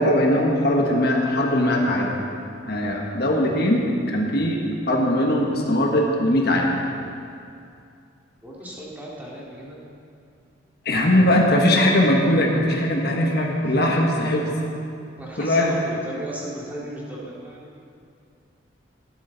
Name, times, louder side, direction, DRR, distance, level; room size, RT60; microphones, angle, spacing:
voice 1, 0.0-2.1 2.7-4.6 4.9-6.7 10.8-14.5 15.4-15.8, left 1 dB, 55° left, -1 dB, 1.4 m, -20 dB
voice 2, 8.4-9.8 11.0-11.5 15.2-17.8, right 1 dB, 10° right, -5 dB, 2.2 m, -35 dB
15.5 x 11.5 x 4.0 m, 2.5 s
head